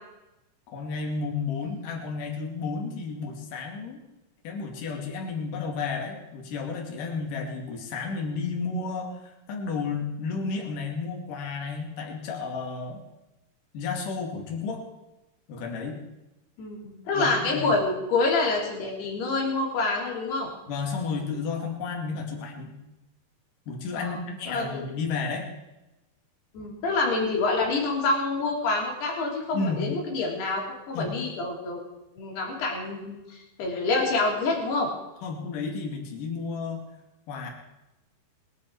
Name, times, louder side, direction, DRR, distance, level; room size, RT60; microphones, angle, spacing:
voice 1, 0.7-4.0 4.4-13.0 13.7-14.8 15.5-16.0 17.1-17.7 20.7-22.8 23.7-25.5 29.5-29.8 30.9-31.1 35.2-36.9 37.3-37.5, left 4 dB, 60° left, 1 dB, 3.8 m, -32 dB
voice 2, 16.6-20.5 23.9-24.2 24.5-24.7 26.5-31.8 32.2-34.9, left 3 dB, 80° left, -1 dB, 5.4 m, -27 dB
21.5 x 11.5 x 4.8 m, 0.97 s
omnidirectional pair, 4.6 m